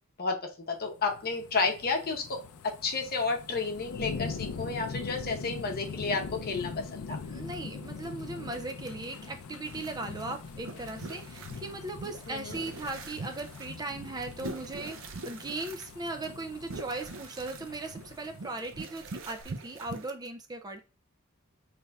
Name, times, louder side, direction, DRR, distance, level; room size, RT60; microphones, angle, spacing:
voice 1, 0.2-7.2 12.3-12.6, left 4 dB, 45° left, 3 dB, 0.8 m, -31 dB
sound 1, 0.8-19.0 19.4-19.5, left 5 dB, 85° left, 0.4 m, -42 dB
voice 2, 7.2-20.8, right 2 dB, 20° right, 6 dB, 0.3 m, -38 dB
sound 2, 9.6-20.1, right 3 dB, 65° right, 0.6 m, -44 dB
5.4 x 3.3 x 2.3 m, 0.34 s
head